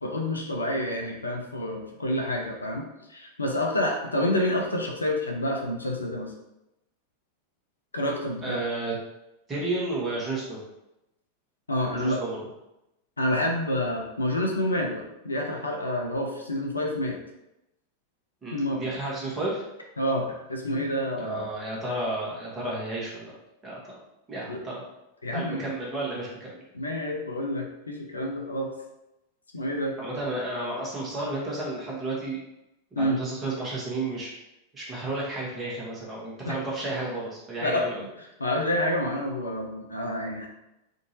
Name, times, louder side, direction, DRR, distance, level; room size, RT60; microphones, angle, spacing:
voice 1, 0.0-6.3 7.9-8.6 11.7-12.2 13.2-17.2 18.5-18.8 20.0-21.5 24.5-24.6 25.2-25.7 26.7-28.7 29.5-29.9 33.0-33.2 36.4-36.6 37.6-40.5, left 1 dB, 80° left, 1 dB, 0.5 m, -28 dB
voice 2, 8.4-8.9 9.5-10.6 11.9-12.4 18.4-19.6 21.2-23.4 23.6-23.8 24.3-24.9 25.3-26.6 30.0-32.4 32.9-34.3 34.7-38.0, right 2 dB, 20° right, -5 dB, 1.3 m, -32 dB
3.6 x 2.6 x 2.9 m, 0.90 s
figure-of-eight pair, 90°, 0 cm